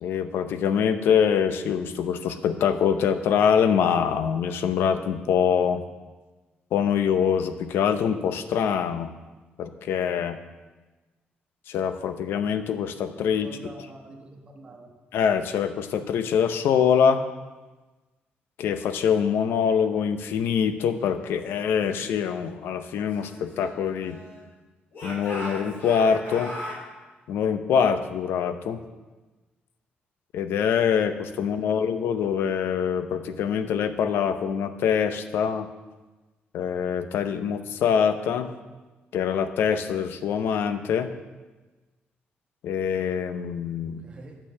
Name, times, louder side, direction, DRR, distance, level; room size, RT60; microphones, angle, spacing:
voice 1, 0.0-5.8 6.7-9.1 9.6-10.4 11.7-13.5 15.1-17.2 18.6-24.2 25.0-26.5 27.3-28.8 30.3-35.7 36.5-38.5 39.1-41.1 42.6-44.0, left 7 dB, 80° left, 9 dB, 0.7 m, -24 dB
voice 2, 13.4-14.9 31.6-31.9 44.0-44.4, right 2 dB, 30° right, 2 dB, 1.2 m, -46 dB
Speech / Shout, 22.9-24.5 24.9-26.8, left 1 dB, 60° left, 4.1 m, -38 dB
9.0 x 6.7 x 6.9 m, 1.2 s
cardioid pair, 175°, 4 cm